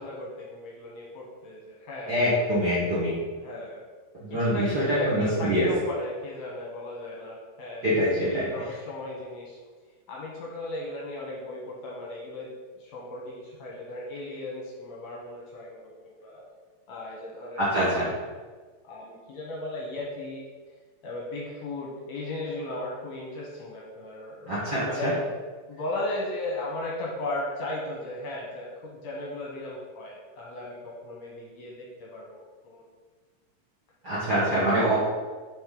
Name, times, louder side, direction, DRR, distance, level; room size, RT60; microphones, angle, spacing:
voice 1, 0.0-2.1 3.4-3.8 4.3-9.6 10.1-12.5 12.8-16.4 16.9-18.2 18.8-20.5 21.0-25.2 25.7-32.9 34.3-34.9, left 2 dB, 70° left, -3 dB, 1.9 m, -36 dB
voice 2, 2.1-3.1 4.2-5.7 7.8-8.5 17.6-18.1 24.5-25.1 34.0-35.0, equal, 50° right, -9 dB, 1.3 m, -24 dB
6.3 x 5.0 x 3.8 m, 1.4 s
omnidirectional pair, 3.8 m